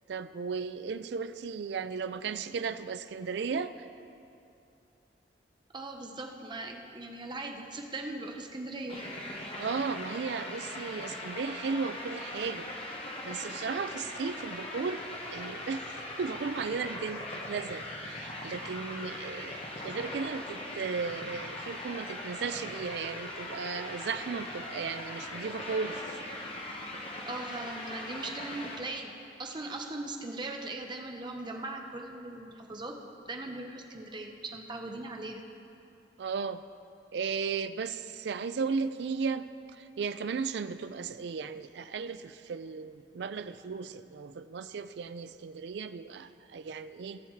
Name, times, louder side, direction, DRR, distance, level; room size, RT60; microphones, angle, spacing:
voice 1, 0.1-3.9 9.6-12.7 13.2-15.9 16.2-26.0 36.2-36.6 37.1-39.5 39.8-47.2, right 5 dB, 65° right, 12 dB, 0.4 m, -35 dB
voice 2, 5.7-9.1 27.3-29.1 29.4-33.0 33.2-35.4, right 2 dB, 25° right, 2 dB, 0.8 m, -39 dB
sound 1, 8.9-28.8, left 1 dB, 35° left, 1.2 m, -40 dB
17.5 x 7.0 x 3.2 m, 2.7 s
head